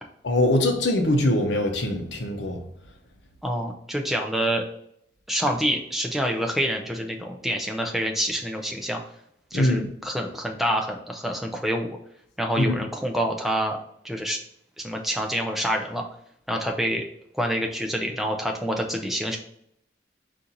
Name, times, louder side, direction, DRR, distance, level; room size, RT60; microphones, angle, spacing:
voice 1, 0.2-2.6 9.5-9.9 12.6-12.8, left 1 dB, 65° left, 3 dB, 0.8 m, -22 dB
voice 2, 3.4-4.6 5.3-9.0 9.5-12.0 12.4-13.8 14.0-14.4 14.8-16.0 16.5-17.0 17.3-19.4, equal, ahead, 2 dB, 0.4 m, -27 dB
4.3 x 2.6 x 3.9 m, 0.73 s
head